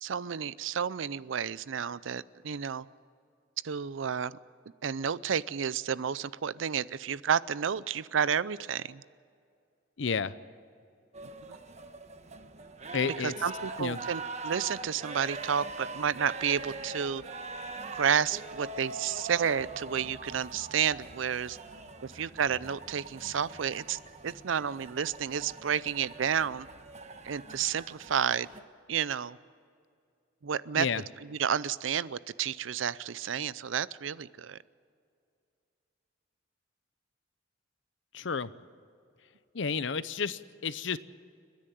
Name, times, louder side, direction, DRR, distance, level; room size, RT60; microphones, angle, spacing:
voice 1, 0.0-2.9 3.6-4.4 4.8-9.0 11.5-11.6 13.0-17.2 17.9-21.6 22.0-26.7 27.2-28.5 28.9-29.4 30.4-30.9 31.2-34.6, right 7 dB, 85° right, 19 dB, 0.5 m, -31 dB
voice 2, 10.0-10.3 12.9-13.3 13.8-14.0 30.7-31.0 38.1-38.5 39.5-41.0, left 5 dB, 70° left, 15 dB, 0.7 m, -31 dB
sound 1, 11.1-28.6, right 3 dB, 35° right, 1.2 m, -43 dB
29.5 x 10.5 x 9.1 m, 2.4 s
head